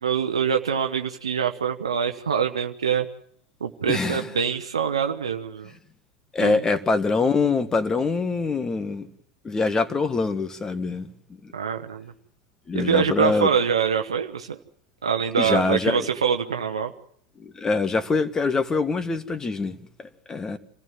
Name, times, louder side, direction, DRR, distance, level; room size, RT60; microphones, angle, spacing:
voice 1, 0.0-3.1 3.6-5.7 6.4-6.6 11.5-12.1 12.7-14.6 15.0-16.9, right 7 dB, 85° right, 5 dB, 0.8 m, -24 dB
voice 2, 3.9-4.3 6.3-9.1 9.4-11.1 11.4-11.5 12.7-13.5 15.4-16.1 17.4-20.6, left 4 dB, 20° left, 11 dB, 1.6 m, -24 dB
25.5 x 15.0 x 7.6 m, 0.66 s
hypercardioid pair, 90°, 3 cm